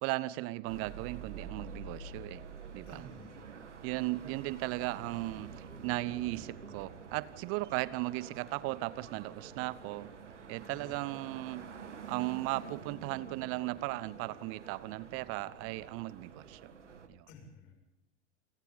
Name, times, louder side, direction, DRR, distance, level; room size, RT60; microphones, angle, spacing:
voice 1, 0.0-2.4 2.7-3.1 3.8-10.1 10.5-11.7 12.1-16.7 17.1-17.3, right 19 dB, 40° right, 19 dB, 0.9 m, -36 dB
sound 1, 0.7-17.1, right 5 dB, 75° right, 2.3 m, -48 dB
voice 2, 2.9-3.4 10.7-10.9 17.3-17.7, left 2 dB, 50° left, 3 dB, 6.9 m, -53 dB
29.0 x 28.5 x 4.0 m, 0.90 s
figure-of-eight pair, 85°, 36 cm